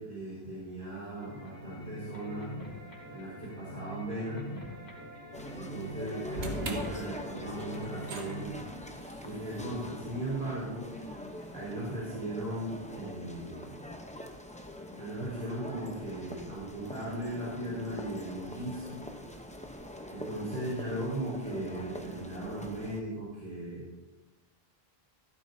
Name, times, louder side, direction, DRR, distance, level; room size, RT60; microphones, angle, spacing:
voice 1, 0.0-2.5 3.1-4.4 5.5-8.6 9.2-10.8 11.5-13.8 15.0-19.0 20.1-23.8, right 1 dB, 45° right, -7 dB, 4.5 m, -37 dB
sound 1, 0.8-8.5, left 1 dB, 80° left, 2.8 m, -44 dB
sound 2, 5.3-23.0, left 1 dB, 10° left, 0.7 m, -44 dB
sound 3, 6.3-12.6, right 2 dB, 80° right, 1.6 m, -44 dB
15.0 x 12.5 x 2.7 m, 1.1 s
omnidirectional pair, 1.0 m